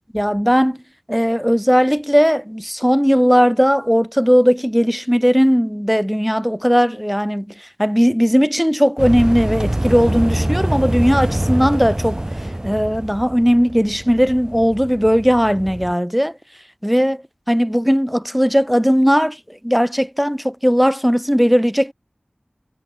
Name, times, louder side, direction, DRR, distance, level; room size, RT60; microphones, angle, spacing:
voice 1, 0.1-0.8 1.1-12.2 12.6-16.4 16.8-21.9, equal, ahead, 4.9 m, -17 dB
sound 1, 9.0-15.9, right 1 dB, 25° right, 2.7 m, -24 dB
wide cardioid pair, 50°, 2 cm